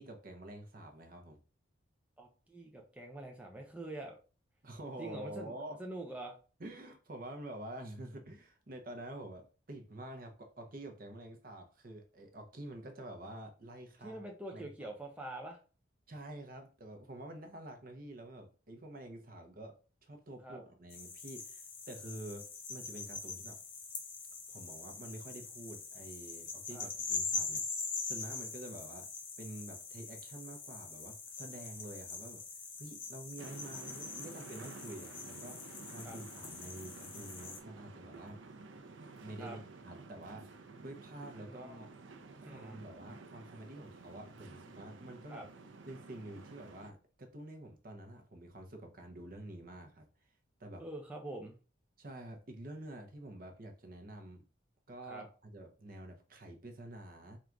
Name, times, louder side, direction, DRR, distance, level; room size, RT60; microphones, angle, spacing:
voice 1, 0.0-1.4 4.6-5.8 6.6-14.3 14.5-14.9 16.1-19.7 20.0-23.6 24.5-27.7 28.0-29.1 29.4-32.4 32.8-38.4 39.2-40.5 40.8-41.9 42.4-45.5 45.9-50.1 50.6-50.8 52.0-54.4 54.9-57.4, right 1 dB, 45° right, 0.8 m, -48 dB
voice 2, 2.2-4.2 5.0-5.5 5.8-6.3 14.0-15.6 20.4-20.6 26.7-26.9 36.0-36.2 39.4-39.6 41.5-41.9 42.5-42.8 45.3-45.5 50.7-51.5 55.0-55.3, right 2 dB, 5° right, 0.5 m, -45 dB
sound 1, 20.9-37.6, left 5 dB, 80° left, 1.4 m, -43 dB
sound 2, 33.4-46.9, right 3 dB, 80° right, 0.5 m, -52 dB
3.8 x 2.4 x 4.5 m
head